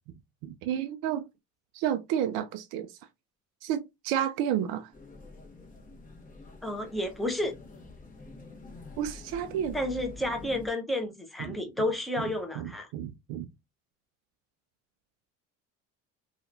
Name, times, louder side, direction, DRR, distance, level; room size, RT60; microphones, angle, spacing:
voice 1, 0.4-1.2 1.7-2.9 3.6-4.9 9.0-9.8 11.4-11.6 12.2-12.3 12.6-13.5, right 10 dB, 65° right, 0.5 m, -31 dB
sound 1, 4.9-10.7, left 3 dB, 20° left, 1.1 m, -47 dB
voice 2, 6.6-7.5 9.7-12.9, left 1 dB, ahead, 0.8 m, -31 dB
2.8 x 2.4 x 2.6 m
supercardioid pair, 80°, 38 cm